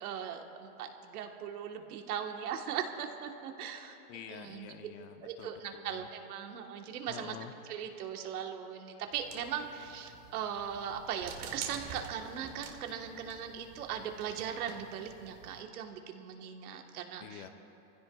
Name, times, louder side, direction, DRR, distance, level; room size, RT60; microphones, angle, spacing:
voice 1, 0.0-4.0 4.3-4.7 5.2-7.4 7.7-17.4, right 8 dB, 75° right, 4 dB, 1.4 m, -39 dB
voice 2, 4.1-6.1 7.1-7.5 17.2-17.5, left 8 dB, 35° left, 8 dB, 0.6 m, -48 dB
sound 1, 9.1-15.6, right 6 dB, 45° right, 1.4 m, -49 dB
23.5 x 15.5 x 2.3 m, 3.0 s
supercardioid pair, 150°, 45 cm